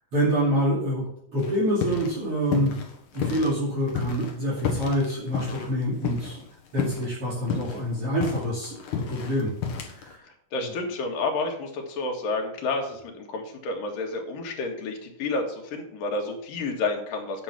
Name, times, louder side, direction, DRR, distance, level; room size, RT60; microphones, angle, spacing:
voice 1, 0.1-2.8 3.1-6.4 6.7-8.8 9.1-9.5 9.9-10.2, equal, 45° right, -6 dB, 3.4 m, -26 dB
sound 1, 1.4-2.2 2.4-3.5 3.9-6.5 6.8-7.1 7.4-10.1, left 6 dB, 70° left, 2.8 m, -31 dB
voice 2, 10.5-17.4, left 3 dB, 90° left, 2 dB, 3.5 m, -30 dB
9.8 x 6.4 x 5.9 m, 0.69 s
omnidirectional pair, 3.8 m